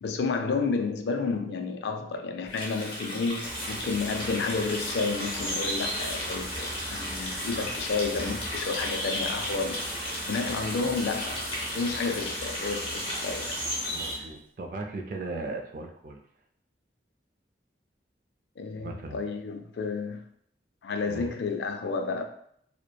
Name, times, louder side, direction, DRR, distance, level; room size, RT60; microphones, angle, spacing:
voice 1, 0.0-9.8 10.3-13.6 14.2-14.3 18.6-20.2 20.8-22.2, left 4 dB, 75° left, 0.3 m, -31 dB
Water tap faucet, 2.5-14.0, left 1 dB, 30° left, 0.6 m, -36 dB
sound 1, 3.4-14.2, equal, 25° right, 0.9 m, -36 dB
voice 2, 13.9-16.2 18.8-19.2 21.1-21.3, right 3 dB, 50° right, 0.3 m, -37 dB
3.0 x 2.1 x 2.2 m
head